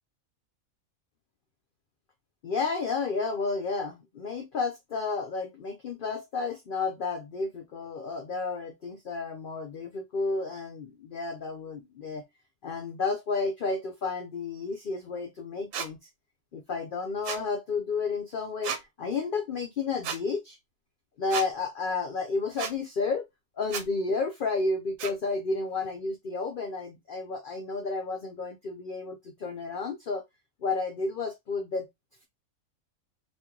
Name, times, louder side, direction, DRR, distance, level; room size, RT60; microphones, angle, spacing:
voice 1, 2.4-12.2 12.6-16.0 16.5-18.7 19.0-20.6 21.2-23.3 23.6-30.2 30.6-31.9, left 4 dB, 55° left, 0.6 m, -31 dB
sound 1, 15.7-15.9 17.2-17.4 18.6-18.8 20.0-20.2 21.3-21.5 22.6-22.7 23.7-23.9 25.0-25.1, right 7 dB, 75° right, 1.0 m, -33 dB
3.0 x 2.6 x 3.6 m
omnidirectional pair, 1.5 m